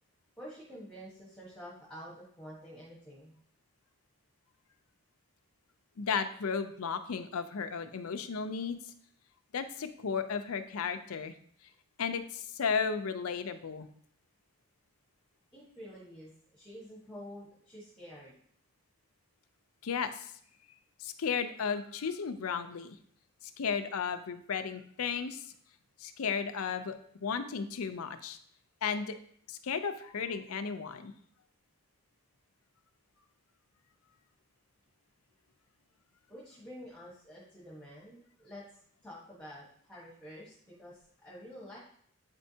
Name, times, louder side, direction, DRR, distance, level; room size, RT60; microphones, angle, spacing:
voice 1, 0.4-3.3 15.5-18.3 36.3-38.6 39.0-41.8, equal, 5° left, -6 dB, 1.2 m, -48 dB
voice 2, 6.0-8.8 9.5-11.3 12.0-13.9 19.8-20.3 21.0-23.0 23.6-25.4 26.0-27.0 27.2-28.4 28.8-29.2 29.5-31.1, left 6 dB, 80° left, 9 dB, 0.5 m, -34 dB
8.3 x 4.4 x 2.8 m, 0.63 s
head